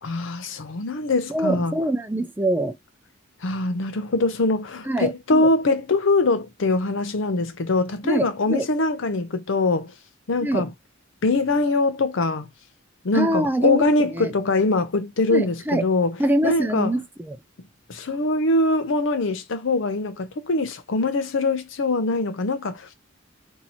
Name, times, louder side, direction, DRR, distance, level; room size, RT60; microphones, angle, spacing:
voice 1, 0.0-1.7 3.4-9.9 10.3-10.7 11.2-12.5 13.0-16.2 16.4-16.9 17.9-22.9, left 2 dB, 70° left, 0.6 m, -23 dB
voice 2, 1.3-2.8 4.9-5.5 8.0-8.7 10.4-10.7 13.1-13.8 14.1-14.3 15.3-15.8 16.2-17.4, right 1 dB, 10° right, 0.4 m, -24 dB
2.8 x 2.8 x 4.1 m
head